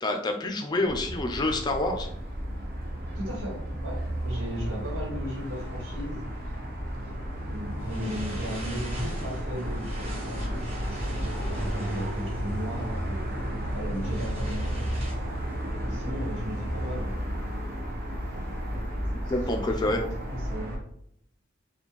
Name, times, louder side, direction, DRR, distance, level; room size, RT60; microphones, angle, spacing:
voice 1, 0.0-2.1 19.1-20.0, left 2 dB, 20° left, 4 dB, 0.4 m, -27 dB
sound 1, 0.8-20.8, equal, 50° right, 0.9 m, -33 dB
voice 2, 3.1-6.3 7.5-14.9 15.8-17.2 18.6-20.8, equal, 85° right, -3 dB, 1.4 m, -37 dB
sound 2, 7.8-15.1, equal, 30° right, 1.4 m, -40 dB
4.3 x 2.2 x 3.0 m, 0.70 s
head